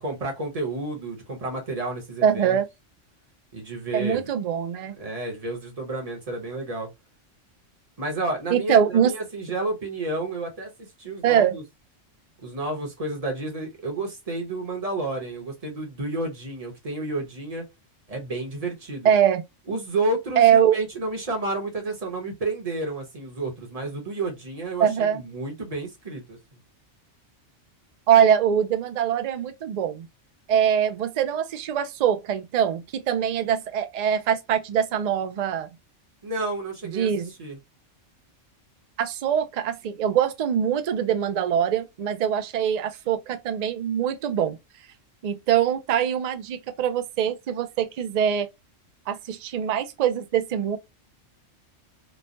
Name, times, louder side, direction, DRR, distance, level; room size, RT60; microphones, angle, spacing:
voice 1, 0.0-2.6 3.5-4.3 5.0-6.9 8.0-11.6 12.4-17.7 18.1-19.1 19.7-26.4 36.2-37.1 37.4-37.6, right 2 dB, 35° right, 1.0 m, -31 dB
voice 2, 2.2-2.7 3.9-4.9 8.5-9.1 11.2-11.6 19.0-19.4 20.4-20.8 24.8-25.2 28.1-30.1 30.5-35.8 36.9-37.3 39.0-44.6 45.2-48.5 49.1-50.8, right 9 dB, 85° right, 0.3 m, -23 dB
3.1 x 2.2 x 2.5 m
omnidirectional pair, 1.3 m